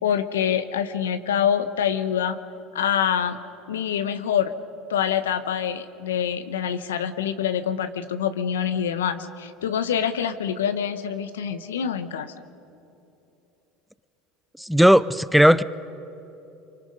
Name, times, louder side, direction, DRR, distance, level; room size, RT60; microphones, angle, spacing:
voice 1, 0.0-2.4 2.7-3.4 3.7-4.5 4.9-12.3, left 8 dB, 90° left, 11 dB, 0.9 m, -25 dB
voice 2, 14.6-15.6, equal, ahead, 17 dB, 0.5 m, -16 dB
25.0 x 24.0 x 5.3 m, 3.0 s
hypercardioid pair, 90°, 0 cm